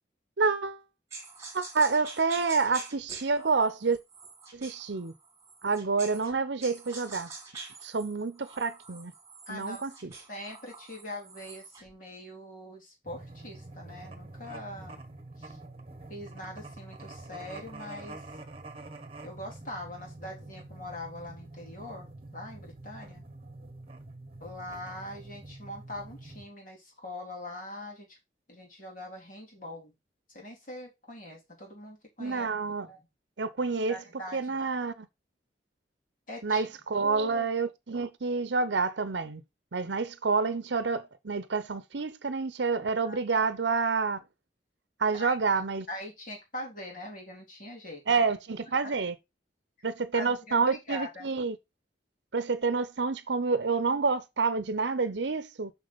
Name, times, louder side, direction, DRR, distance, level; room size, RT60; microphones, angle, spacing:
voice 1, 0.4-0.8 1.5-4.0 4.5-5.1 5.6-7.3 7.8-9.1 9.5-10.1 32.2-32.9 33.4-34.0 34.3-35.1 36.4-39.4 39.7-44.2 45.0-45.9 48.1-49.1 49.8-51.6 52.3-55.7, right 4 dB, 80° right, 0.7 m, -28 dB
sound 1, 1.1-6.3 6.6-11.9, right 4 dB, 20° right, 2.5 m, -46 dB
voice 2, 9.5-9.9 10.3-15.0 15.4-15.6 16.1-18.2 19.2-23.3 24.4-28.2 28.5-29.9 30.3-33.1 33.9-34.7 36.3-36.7 37.0-37.5 43.0-43.5 45.1-45.4 45.9-48.0 50.1-51.3, left 1 dB, 50° left, 3.5 m, -42 dB
sound 2, 13.0-26.5, right 2 dB, 35° right, 1.3 m, -46 dB
6.7 x 6.0 x 4.0 m
head